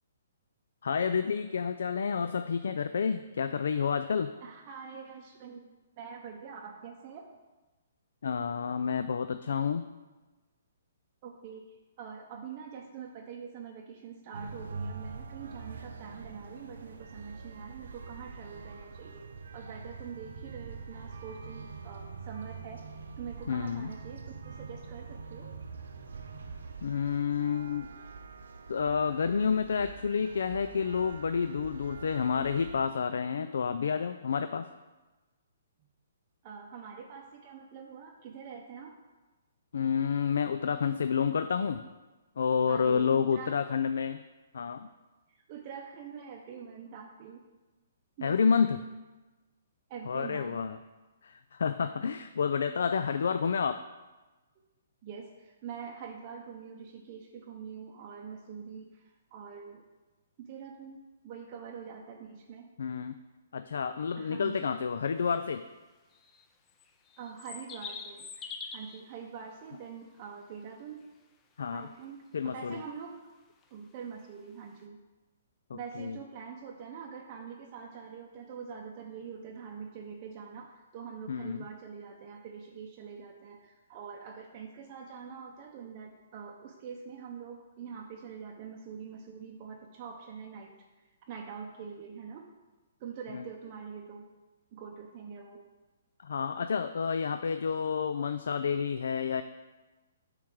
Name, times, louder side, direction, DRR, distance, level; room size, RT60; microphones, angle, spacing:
voice 1, 0.8-4.3 8.2-9.9 23.5-23.9 26.8-27.9 28.7-34.7 39.7-41.9 42.4-44.2 44.5-44.9 48.2-48.8 50.1-50.8 51.2-53.8 62.8-63.2 63.5-65.6 71.6-71.9 72.3-72.8 75.7-76.2 81.3-81.6 93.3-93.4 96.2-99.4, left 6 dB, 75° left, 10 dB, 0.3 m, -29 dB
voice 2, 4.4-5.7 5.9-7.3 11.2-19.3 19.5-22.8 23.2-25.5 36.4-39.0 42.7-43.6 45.3-47.4 48.2-48.8 49.9-50.6 55.0-59.8 60.4-62.7 64.2-64.7 67.2-68.3 68.6-71.0 71.7-73.2 73.7-75.0 75.7-90.8 91.3-92.5 93.0-94.3 94.7-95.6, right 6 dB, 35° right, 1 dB, 0.6 m, -44 dB
sound 1, 14.3-32.8, right 4 dB, 80° right, 0.7 m, -44 dB
sound 2, 65.3-65.4 66.1-69.0 72.8-72.9 73.6-73.7 74.8-74.9, left 5 dB, 15° left, 0.5 m, -44 dB
8.4 x 3.2 x 6.0 m, 1.2 s
hypercardioid pair, 160°, 0 cm